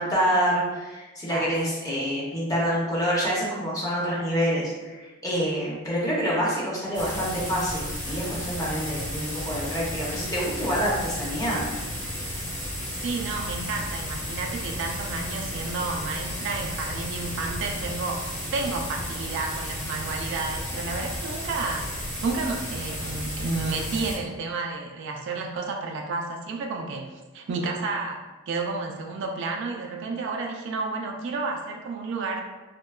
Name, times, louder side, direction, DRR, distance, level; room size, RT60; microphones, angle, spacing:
voice 1, 0.0-11.7, equal, 15° left, -6 dB, 0.6 m, -27 dB
voice 2, 1.3-1.6 13.0-27.1 27.3-28.2 28.5-32.4, right 3 dB, 60° right, 2 dB, 0.3 m, -31 dB
sound 1, 6.9-24.2, equal, 35° left, 1.1 m, -33 dB
2.7 x 2.2 x 2.2 m, 1.2 s
head